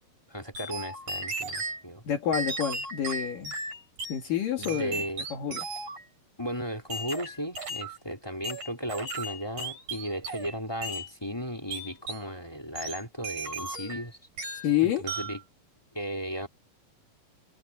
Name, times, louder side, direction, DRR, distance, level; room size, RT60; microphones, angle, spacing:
voice 1, 0.3-2.0 4.6-5.2 6.4-14.2 14.8-15.4 15.9-16.5, equal, 5° left, 2.8 m, -35 dB
sound 1, 0.5-1.8 2.3-4.2 4.6-6.0 6.9-8.0 8.4-10.5 10.8-11.1 11.7-12.3 12.8-14.1 14.4-14.8 15.1-15.4, right 2 dB, 55° right, 8.5 m, -36 dB
voice 2, 2.1-3.6 4.1-5.0 5.3-5.7 14.6-15.1, left 10 dB, 65° left, 3.9 m, -28 dB
omnidirectional pair, 4.2 m